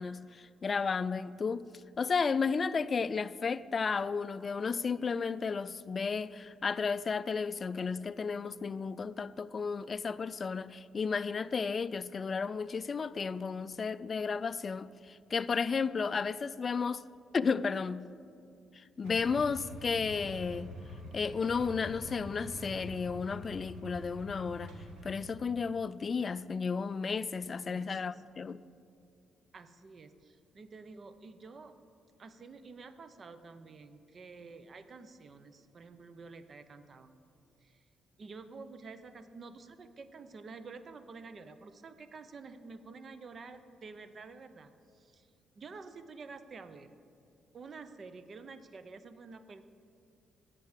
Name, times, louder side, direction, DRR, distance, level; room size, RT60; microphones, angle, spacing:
voice 1, 0.0-1.7 2.0-17.0 17.3-18.1 18.7-20.8 21.1-24.7 25.0-28.6, left 5 dB, 40° left, 0.3 m, -33 dB
Motorcycle / Engine starting / Idling, 19.0-25.2, equal, 85° right, 1.6 m, -46 dB
voice 2, 27.6-28.2 29.5-31.7 32.2-37.2 37.6-37.9 38.2-46.9 47.5-49.6, right 4 dB, 45° right, 0.7 m, -49 dB
8.3 x 7.5 x 8.1 m
cardioid pair, 90°, 0 cm